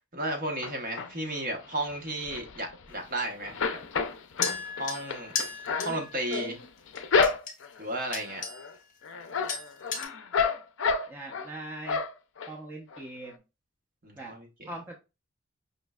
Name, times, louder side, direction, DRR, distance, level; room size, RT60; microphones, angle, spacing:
voice 1, 0.1-3.6 4.8-5.4 5.8-6.6 7.8-8.4 14.0-14.7, right 1 dB, 40° right, 0.9 m, -33 dB
sound 1, 0.6-1.4 1.8-3.2 3.4-7.8 8.3-8.7 9.0-11.5 11.9-12.5 12.9-13.0 13.3-13.4, left 5 dB, 70° left, 0.5 m, -30 dB
sound 2, 4.4-6.4 7.0-7.5 8.1-8.7 9.0-9.2 9.5-10.0, left 5 dB, 40° left, 0.9 m, -35 dB
voice 2, 11.1-12.0 12.5-13.4 14.1-14.3 14.6-15.0, right 1 dB, 10° right, 0.8 m, -41 dB
5.3 x 3.1 x 2.3 m
head